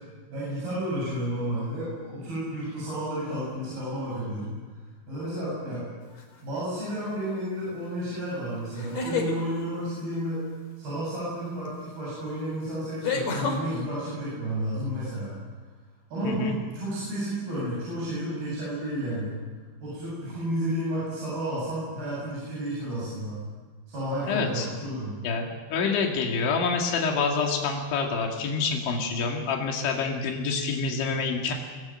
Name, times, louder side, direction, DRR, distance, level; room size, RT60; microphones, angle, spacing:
voice 1, 0.3-4.5 5.1-5.8 6.4-10.5 10.8-15.3 16.1-19.4 19.8-23.4 23.9-25.2, equal, 55° right, -7 dB, 9.8 m, -31 dB
sound 1, 6.2-6.6 8.7-9.4 11.7-11.8 13.0-13.6, left 4 dB, 40° left, 4.3 m, -28 dB
voice 2, 16.2-16.6 24.3-24.7 25.2-31.5, left 4 dB, 90° left, 1 dB, 4.7 m, -27 dB
25.0 x 19.5 x 9.1 m, 1.4 s
omnidirectional pair, 5.2 m